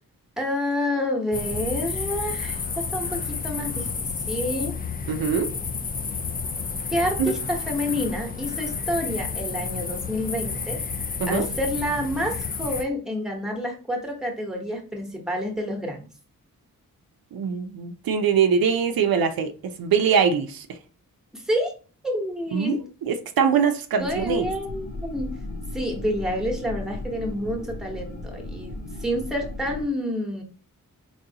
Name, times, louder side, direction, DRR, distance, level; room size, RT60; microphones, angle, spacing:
voice 1, 0.4-3.9 4.3-4.7 6.9-10.8 11.3-16.1 21.3-21.7 22.0-22.8 24.0-25.3 25.7-28.7 29.0-30.4, left 1 dB, ahead, 1.0 m, -28 dB
sound 1, 1.3-12.8, left 5 dB, 25° left, 0.3 m, -31 dB
voice 2, 5.1-5.5 7.2-7.3 11.2-11.5 17.3-20.7 22.5-22.8 23.0-24.5, right 6 dB, 80° right, 0.5 m, -22 dB
sound 2, 24.0-29.8, left 1 dB, 60° left, 1.0 m, -36 dB
3.9 x 3.0 x 2.8 m
wide cardioid pair, 105°, 35 cm